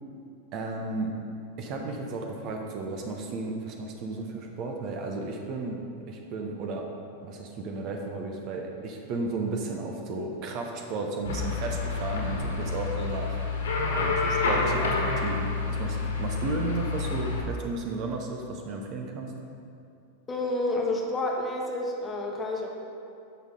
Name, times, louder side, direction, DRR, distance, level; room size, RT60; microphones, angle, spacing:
voice 1, 0.5-1.2 1.6-6.9 7.2-13.4 13.9-19.3, right 3 dB, 40° right, 2 dB, 0.9 m, -34 dB
sound 1, 11.2-17.4, left 4 dB, 65° left, 1.7 m, -28 dB
voice 2, 20.3-22.7, left 2 dB, 20° left, 0 dB, 1.2 m, -29 dB
10.5 x 6.4 x 3.8 m, 2.6 s
figure-of-eight pair, 90°, 0 cm